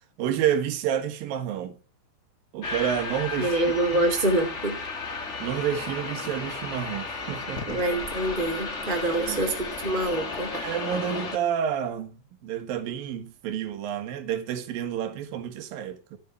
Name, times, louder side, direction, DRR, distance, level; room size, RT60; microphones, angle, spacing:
voice 1, 0.2-1.8 2.5-3.6 3.9-4.0 5.4-7.8 9.2-9.5 10.5-16.2, right 9 dB, 65° right, 3.3 m, -29 dB
sound 1, 2.6-11.4, left 3 dB, 50° left, 0.8 m, -34 dB
voice 2, 3.4-4.8 7.7-9.5 9.8-10.5, right 1 dB, 15° right, 1.8 m, -25 dB
15.5 x 6.8 x 8.5 m
omnidirectional pair, 4.8 m